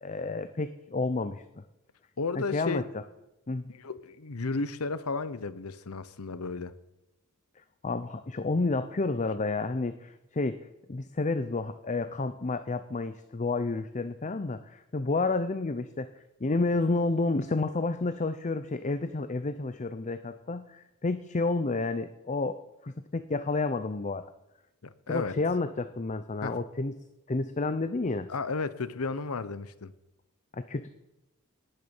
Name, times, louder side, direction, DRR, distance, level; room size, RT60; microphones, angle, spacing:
voice 1, 0.0-1.4 2.3-2.8 3.5-3.7 7.8-10.6 10.9-16.1 16.4-24.2 25.1-26.9 27.3-28.3 30.5-30.9, left 3 dB, 35° left, 10 dB, 0.6 m, -30 dB
voice 2, 2.2-2.9 3.7-6.7 24.8-25.4 26.4-26.6 28.3-29.9, left 4 dB, 80° left, 15 dB, 0.9 m, -33 dB
18.5 x 6.8 x 7.0 m, 0.94 s
head